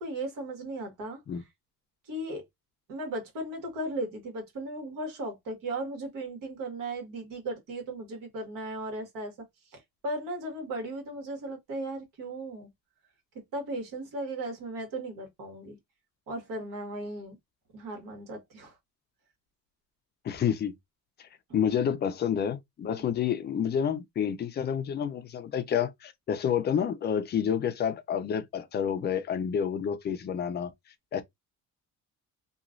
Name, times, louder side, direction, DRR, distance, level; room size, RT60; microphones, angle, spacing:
voice 1, 0.0-1.2 2.1-2.4 2.9-9.3 9.7-12.7 13.5-15.8 16.3-17.4 17.7-18.8 21.5-21.6 22.9-23.1, right 1 dB, 70° right, 1.5 m, -36 dB
voice 2, 20.2-20.7 21.5-30.7 31.1-31.2, left 8 dB, 30° left, 0.4 m, -29 dB
3.0 x 2.3 x 2.5 m
cardioid pair, 145°, 34 cm